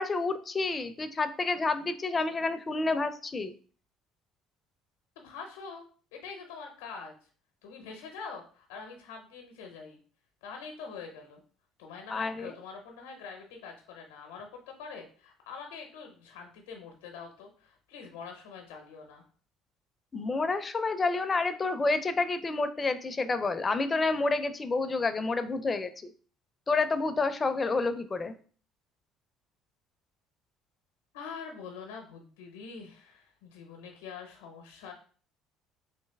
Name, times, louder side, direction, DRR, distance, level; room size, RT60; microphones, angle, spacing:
voice 1, 0.0-3.5 12.1-12.5 20.1-26.1 26.7-28.3, left 3 dB, 30° left, 11 dB, 0.5 m, -29 dB
voice 2, 5.2-5.9 6.1-7.3 7.6-10.0 10.4-11.4 11.8-19.2 31.1-34.9, left 5 dB, 85° left, 3 dB, 0.7 m, -45 dB
3.3 x 2.9 x 3.4 m, 0.42 s
hypercardioid pair, 65°, 0 cm